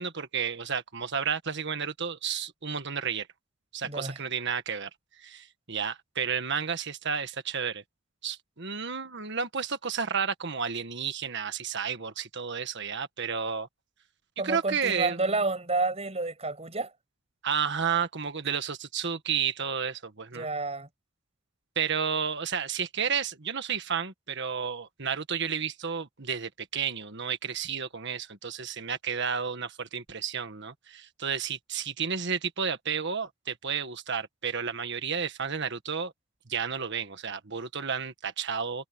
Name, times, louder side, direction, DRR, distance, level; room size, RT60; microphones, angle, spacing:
voice 1, 0.0-3.3 3.7-4.9 5.2-7.8 8.2-13.7 14.4-15.2 17.4-20.5 21.7-36.1 36.5-38.9, right 6 dB, 55° right, 1.6 m, -31 dB
voice 2, 3.8-4.2 14.4-16.9 20.3-20.9, right 3 dB, 30° right, 6.7 m, -30 dB
head